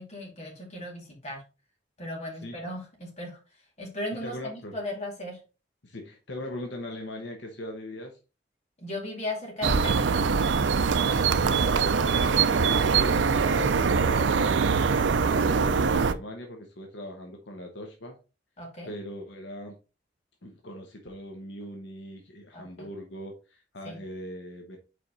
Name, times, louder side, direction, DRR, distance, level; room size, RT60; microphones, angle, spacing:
voice 1, 0.0-1.4 2.0-3.4 3.8-5.4 8.8-10.2 18.6-18.9 22.5-22.6 23.8-24.0, left 1 dB, 40° left, -1 dB, 2.7 m, -36 dB
voice 2, 4.2-4.7 5.8-8.2 11.0-14.7 15.1-18.2 18.9-19.8 20.4-24.8, left 1 dB, 80° left, 2 dB, 1.1 m, -40 dB
sound 1, 9.6-16.1, right 5 dB, 85° right, 0.5 m, -23 dB
5.1 x 4.6 x 4.0 m, 0.32 s
head